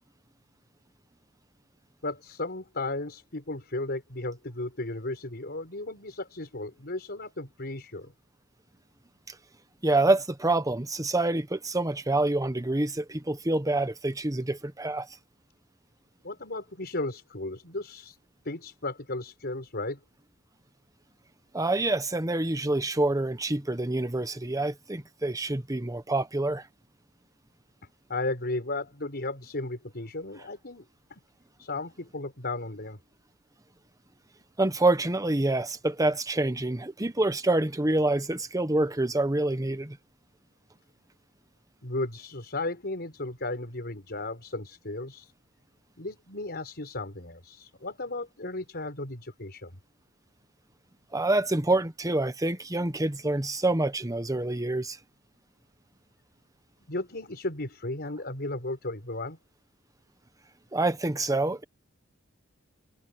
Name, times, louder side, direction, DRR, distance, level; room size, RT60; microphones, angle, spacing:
voice 1, 2.0-8.1 16.2-18.2 18.4-20.0 28.1-30.8 31.1-31.2 31.6-33.0 41.8-45.3 46.0-49.7 56.9-59.4, left 2 dB, 50° left, 5.5 m, -35 dB
voice 2, 9.8-15.1 21.5-26.7 34.6-40.0 51.1-55.0 60.7-61.6, right 2 dB, 15° right, 1.1 m, -27 dB
head